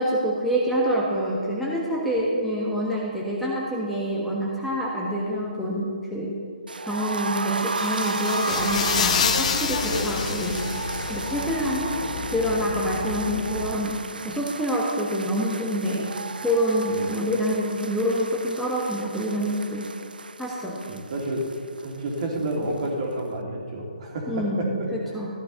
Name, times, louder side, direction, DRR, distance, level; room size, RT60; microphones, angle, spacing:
voice 1, 0.0-6.3 6.8-10.6 11.1-11.9 12.3-16.1 16.4-19.9 20.4-21.0 24.3-25.3, equal, ahead, -6 dB, 1.3 m, -26 dB
sound 1, 6.7-22.5 22.8-22.9 23.2-23.3, right 4 dB, 80° right, 0.5 m, -34 dB
sound 2, 7.6-11.4, left 8 dB, 45° left, 0.6 m, -28 dB
sound 3, 8.5-13.8, left 4 dB, 65° left, 1.2 m, -32 dB
voice 2, 20.9-21.5 21.8-24.9, right 1 dB, 45° right, -1 dB, 2.7 m, -30 dB
14.5 x 11.5 x 4.0 m, 2.2 s
figure-of-eight pair, 145°, 5 cm